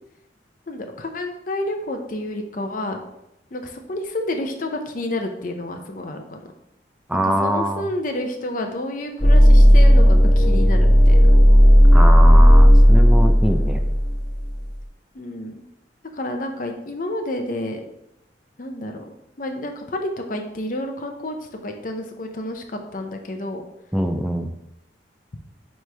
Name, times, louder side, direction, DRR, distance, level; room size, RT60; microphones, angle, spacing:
voice 1, 0.7-3.0 3.5-6.4 7.2-11.3 15.1-15.6 16.1-17.9 18.6-19.0 19.4-21.4 21.6-22.6 22.9-23.6, left 1 dB, 45° left, 4 dB, 0.6 m, -29 dB
voice 2, 7.1-7.8 11.9-13.8 23.9-24.5, equal, 5° right, 5 dB, 0.4 m, -23 dB
sound 1, 9.2-14.6, equal, 20° left, 1.1 m, -12 dB
8.9 x 3.2 x 3.4 m, 0.85 s
head